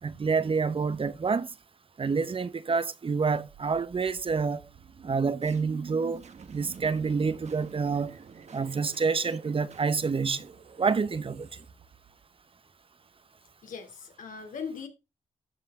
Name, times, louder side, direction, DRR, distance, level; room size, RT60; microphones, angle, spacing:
voice 1, 0.0-1.5 2.0-4.7 5.0-8.2 8.5-10.5 10.8-11.5, right 5 dB, 45° right, 1.0 m, -28 dB
sound 1, 3.5-12.4, right 6 dB, 60° right, 1.5 m, -48 dB
voice 2, 13.6-14.9, left 6 dB, 85° left, 3.1 m, -39 dB
13.5 x 5.4 x 3.7 m
cardioid pair, 60°, 13 cm